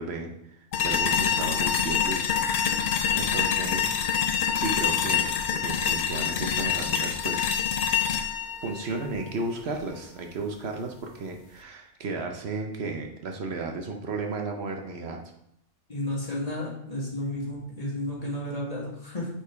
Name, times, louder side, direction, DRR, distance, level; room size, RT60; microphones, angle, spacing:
voice 1, 0.0-2.3 3.1-7.6 8.6-15.2, right 3 dB, 65° right, 3 dB, 1.0 m, -34 dB
sound 1, 0.7-9.8, left 8 dB, 60° left, 0.5 m, -26 dB
voice 2, 15.9-19.3, left 1 dB, 30° left, -3 dB, 1.7 m, -32 dB
5.1 x 4.4 x 4.7 m, 0.75 s
omnidirectional pair, 1.2 m